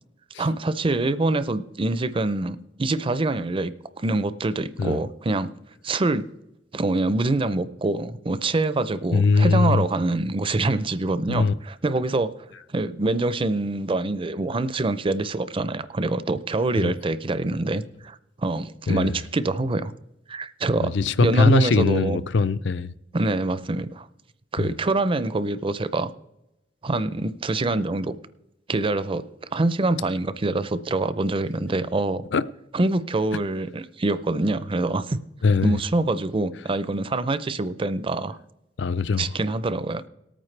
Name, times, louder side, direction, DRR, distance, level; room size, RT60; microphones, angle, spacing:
voice 1, 0.4-3.7 4.0-5.5 5.8-6.3 6.7-12.3 12.7-19.9 20.3-20.9 21.2-22.2 23.1-24.1 24.5-26.1 26.8-28.2 28.7-29.3 29.5-32.2 32.7-35.2 35.6-38.4 39.2-40.1, right 2 dB, 30° right, 0.5 m, -25 dB
voice 2, 9.1-9.9 11.3-11.5 16.8-16.9 18.9-19.2 20.8-22.9 24.6-24.7 32.3-32.4 35.4-35.8 38.8-39.3, left 4 dB, 70° left, 0.5 m, -21 dB
19.0 x 8.9 x 3.3 m
head